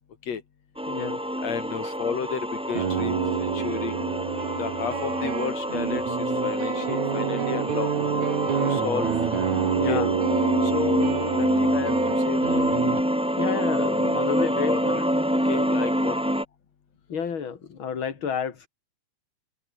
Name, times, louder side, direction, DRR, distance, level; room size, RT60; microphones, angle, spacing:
sound 1, 0.8-16.4, equal, ahead, 3.2 m, -26 dB
voice 1, 0.9-1.2 1.8-1.9 9.8-10.2 13.4-15.0 17.1-18.7, left 7 dB, 45° left, 2.9 m, -30 dB
voice 2, 1.4-4.0 4.6-7.9 8.6-9.1 9.8-10.0 10.6-12.7 13.8-15.0 15.5-16.3, left 7 dB, 60° left, 3.8 m, -32 dB
sound 2, 2.6-13.0, right 8 dB, 75° right, 3.6 m, -28 dB
omnidirectional pair, 3.4 m